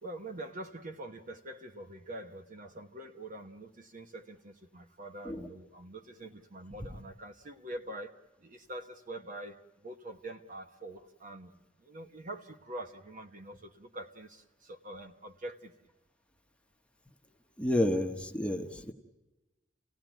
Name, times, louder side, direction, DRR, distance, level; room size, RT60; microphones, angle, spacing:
voice 1, 0.0-15.7, right 1 dB, 40° right, 1.1 m, -45 dB
voice 2, 17.6-18.9, left 1 dB, 5° left, 1.1 m, -30 dB
29.0 x 17.0 x 9.1 m
head